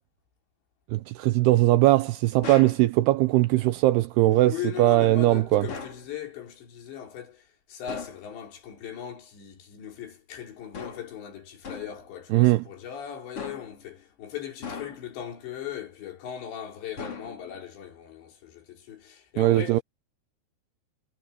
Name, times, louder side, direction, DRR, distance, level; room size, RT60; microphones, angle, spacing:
voice 1, 0.9-4.5 4.8-5.7 12.3-12.6 19.4-19.8, right 16 dB, 80° right, 2.4 m, -20 dB
sound 1, 2.4-2.9 5.7-6.1 7.9-8.3 10.7-11.2 11.6-12.0 13.4-13.8 14.6-15.2 17.0-17.6, left 5 dB, 35° left, 4.3 m, -39 dB
voice 2, 4.3-19.8, left 10 dB, 75° left, 6.0 m, -39 dB
omnidirectional pair, 5.1 m